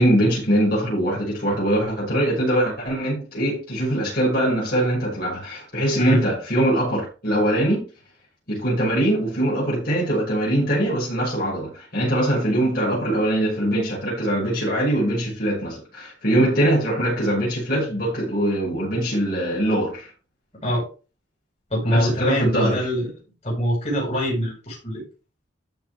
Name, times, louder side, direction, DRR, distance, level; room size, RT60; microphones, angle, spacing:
voice 1, 0.0-7.8 8.5-20.1 21.9-22.8, right 1 dB, 50° left, 6.0 m, -22 dB
voice 2, 21.7-23.1 23.4-25.0, equal, 35° left, 5.7 m, -23 dB
14.0 x 5.4 x 3.7 m
head